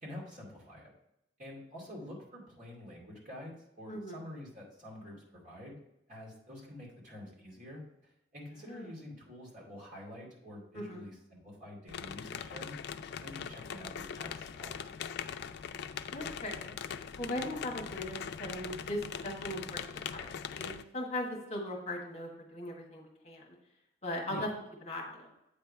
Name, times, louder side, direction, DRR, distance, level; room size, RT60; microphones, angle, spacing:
voice 1, 0.0-0.9 1.4-5.8 6.1-12.8 13.2-15.0 24.3-24.5, left 1 dB, 45° right, -4 dB, 2.4 m, -48 dB
voice 2, 3.9-4.2 8.6-8.9 10.7-11.0 16.1-16.8 17.2-19.8 20.1-23.5 24.0-24.5 24.8-25.3, left 1 dB, 35° left, 0 dB, 1.4 m, -39 dB
sound 1, 11.9-20.8, left 7 dB, 60° left, 0.4 m, -41 dB
8.4 x 3.4 x 5.4 m, 0.81 s
head